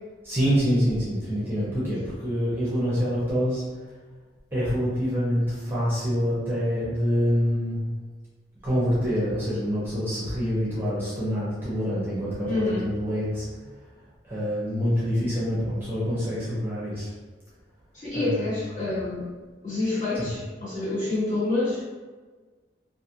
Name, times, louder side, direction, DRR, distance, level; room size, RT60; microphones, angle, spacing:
voice 1, 0.2-3.6 4.5-7.8 8.6-13.5 14.2-17.1 18.1-18.4 20.1-20.3, equal, 10° right, -9 dB, 0.7 m, -26 dB
voice 2, 12.4-12.9 17.9-19.3 19.6-21.9, left 2 dB, 45° left, -12 dB, 1.4 m, -27 dB
2.5 x 2.4 x 2.7 m, 1.4 s
head